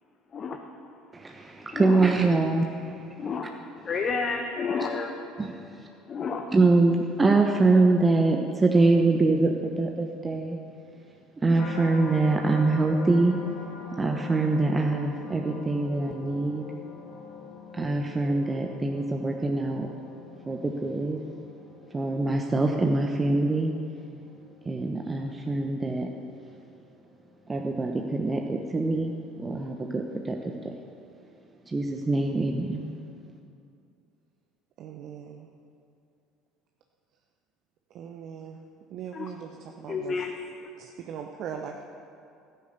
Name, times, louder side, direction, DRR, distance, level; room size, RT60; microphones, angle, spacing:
voice 1, 1.1-3.3 5.4-5.9 6.5-10.6 11.4-13.4 14.0-16.6 17.7-19.9 20.5-21.2 21.9-23.7 24.6-26.1 27.5-30.4 30.6-30.7 31.7-32.8, right 3 dB, 20° right, 2 dB, 1.0 m, -24 dB
voice 2, 3.8-5.1 6.1-6.5 39.1-39.3 39.9-40.4 40.6-40.7, left 5 dB, 40° left, 3 dB, 1.1 m, -30 dB
sound 1, 11.6-26.8 27.3-27.7, left 5 dB, 60° left, 1.7 m, -44 dB
voice 3, 34.8-35.5 37.9-38.6 38.9-40.2 40.8-41.8, right 8 dB, 55° right, 4 dB, 0.9 m, -40 dB
13.5 x 10.0 x 6.8 m, 2.5 s
hypercardioid pair, 65°, 0 cm